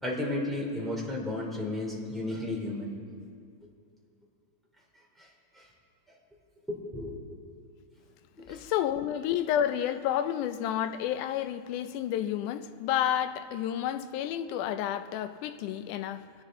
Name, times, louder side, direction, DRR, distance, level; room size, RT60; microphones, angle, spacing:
voice 1, 0.0-2.9 5.2-5.3 5.5-5.7 6.7-7.4 8.4-8.6, left 1 dB, ahead, -3 dB, 2.2 m, -33 dB
voice 2, 8.5-16.2, left 10 dB, 80° left, 10 dB, 2.0 m, -30 dB
26.5 x 9.9 x 3.8 m, 2.3 s
omnidirectional pair, 3.9 m